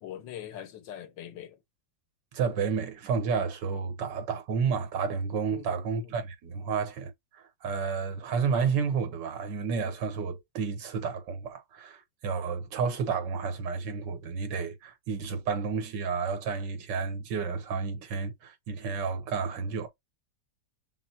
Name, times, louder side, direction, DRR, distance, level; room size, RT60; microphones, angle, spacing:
voice 1, 0.0-1.6 5.5-6.1, left 10 dB, 85° left, 1.5 m, -42 dB
voice 2, 2.3-19.9, right 5 dB, 80° right, 1.7 m, -31 dB
5.9 x 2.0 x 4.3 m
omnidirectional pair, 1.9 m